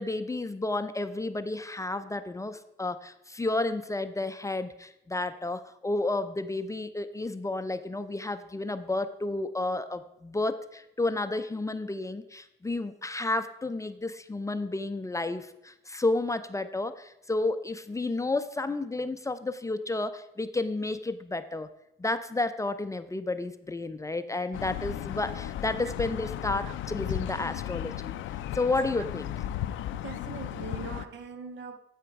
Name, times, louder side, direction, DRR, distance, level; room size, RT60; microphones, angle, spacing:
voice 1, 0.0-21.7 22.0-28.2 28.5-29.4, left 2 dB, 15° left, 0.5 m, -31 dB
sound 1, 24.5-31.1, left 12 dB, 80° left, 0.5 m, -35 dB
voice 2, 30.0-31.8, right 6 dB, 65° right, 0.9 m, -41 dB
12.5 x 5.0 x 4.6 m
cardioid pair, 90°, 20 cm